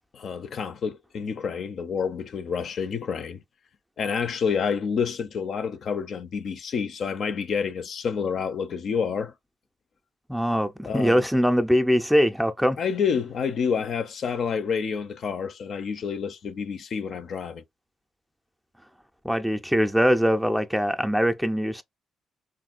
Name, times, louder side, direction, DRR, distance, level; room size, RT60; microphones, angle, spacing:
voice 1, 0.1-3.4 4.0-9.3 10.9-11.2 12.8-17.6, left 6 dB, 60° left, 0.4 m, -28 dB
voice 2, 10.3-12.8 19.2-21.8, equal, ahead, 0.4 m, -22 dB
3.5 x 2.2 x 2.4 m
cardioid pair, 90°, 0 cm